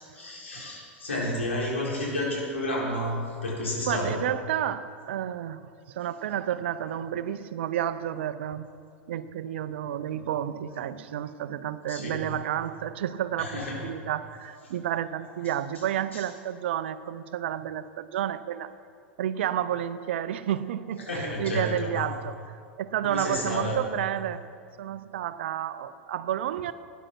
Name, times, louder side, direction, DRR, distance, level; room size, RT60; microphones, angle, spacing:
voice 1, 0.0-3.2 3.4-4.2 11.9-12.2 13.4-13.7 16.1-16.2 21.1-22.0 23.0-23.8, left 1 dB, 85° left, -4 dB, 4.1 m, -31 dB
voice 2, 3.9-8.7 9.1-18.7 19.2-22.4 22.8-24.4 24.8-26.7, right 11 dB, 70° right, 14 dB, 0.6 m, -31 dB
12.5 x 10.5 x 5.9 m, 2.3 s
hypercardioid pair, 95°, 6 cm